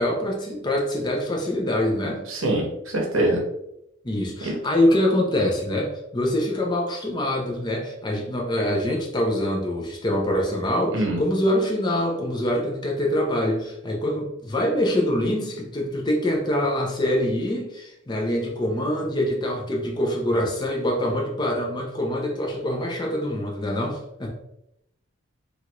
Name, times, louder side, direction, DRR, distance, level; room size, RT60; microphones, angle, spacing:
voice 1, 0.0-2.2 4.0-24.4, left 1 dB, 20° left, 0 dB, 0.5 m, -24 dB
voice 2, 2.3-3.4 4.4-4.5 10.9-11.2, right 1 dB, 75° right, 0 dB, 0.8 m, -24 dB
3.2 x 2.4 x 2.9 m, 0.81 s
head